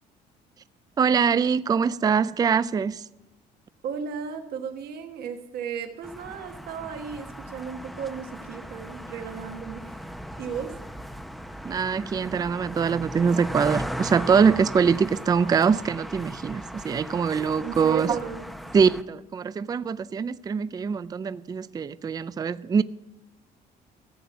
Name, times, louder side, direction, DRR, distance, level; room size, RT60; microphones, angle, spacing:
voice 1, 1.0-3.0 11.6-18.2 18.7-22.8, right 6 dB, 20° right, 0.4 m, -23 dB
voice 2, 3.8-10.0 10.4-10.7 17.4-18.5, right 7 dB, 70° right, 1.4 m, -35 dB
sound 1, 6.0-19.0, equal, ahead, 0.8 m, -38 dB
14.0 x 7.8 x 7.0 m
cardioid pair, 110°, 17 cm